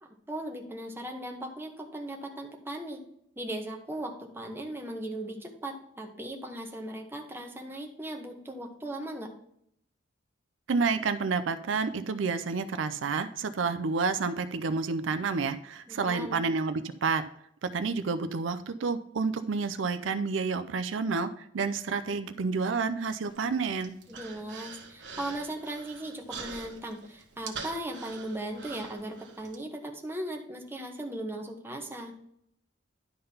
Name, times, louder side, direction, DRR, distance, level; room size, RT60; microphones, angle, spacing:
voice 1, 0.0-3.0 3.4-9.3 15.9-16.4 24.1-32.1, right 1 dB, 10° right, 1 dB, 1.1 m, -38 dB
voice 2, 10.7-17.2 17.6-23.9, right 4 dB, 85° right, 11 dB, 0.5 m, -29 dB
Human voice, 23.3-29.6, right 5 dB, 70° right, 1.4 m, -45 dB
11.0 x 3.9 x 5.5 m, 0.71 s
head